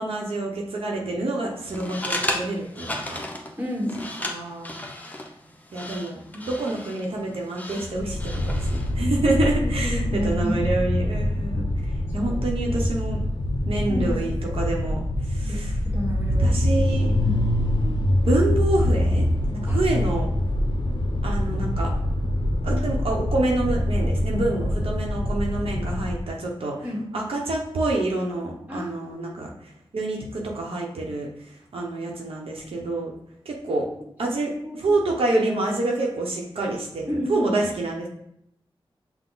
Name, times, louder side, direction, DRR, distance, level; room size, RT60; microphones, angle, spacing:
voice 1, 0.0-3.2 4.2-4.9 5.7-13.2 13.7-15.8 16.4-17.1 18.2-20.3 21.2-21.9 22.6-26.8 27.1-33.1 33.4-33.9 34.2-38.1, right 2 dB, 80° right, -1 dB, 0.8 m, -27 dB
sound 1, 1.6-9.0, left 1 dB, 15° left, 0.7 m, -34 dB
voice 2, 3.6-4.0 6.3-6.4 9.6-10.6 12.2-12.4 13.9-14.5 14.9-15.0 15.4-16.7 17.2-17.4 19.7-19.8 26.8-27.0 28.7-29.2 34.6-35.0 37.1-37.6, equal, 15° right, -2 dB, 1.4 m, -31 dB
sound 2, 7.9-26.3, left 1 dB, 55° left, 0.5 m, -25 dB
5.8 x 2.1 x 3.9 m, 0.74 s
wide cardioid pair, 75°, 10 cm